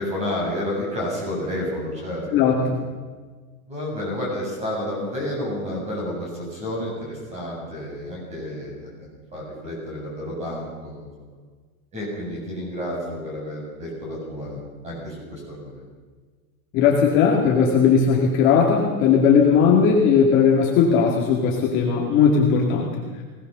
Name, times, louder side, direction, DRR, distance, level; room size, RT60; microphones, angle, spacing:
voice 1, 0.0-2.2 2.6-2.7 3.7-11.3 11.9-15.8, left 1 dB, 15° right, -2 dB, 8.0 m, -30 dB
voice 2, 2.3-2.8 16.7-23.0, left 6 dB, 25° left, -1 dB, 2.3 m, -18 dB
22.0 x 18.5 x 6.8 m, 1.4 s
supercardioid pair, 175°, 43 cm